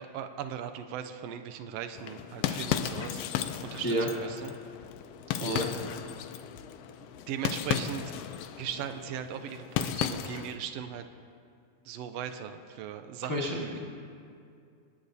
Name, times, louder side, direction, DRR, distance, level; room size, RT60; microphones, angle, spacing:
voice 1, 0.0-3.2 3.6-4.0 4.2-4.6 5.4-5.7 7.1-8.1 8.6-11.1 11.8-13.7, right 9 dB, 90° right, 9 dB, 1.4 m, -38 dB
sound 1, 1.9-10.6, left 10 dB, 90° left, 1.3 m, -35 dB
voice 2, 13.3-13.8, equal, 25° left, -2 dB, 0.4 m, -30 dB
28.5 x 10.0 x 2.7 m, 2.3 s
omnidirectional pair, 3.4 m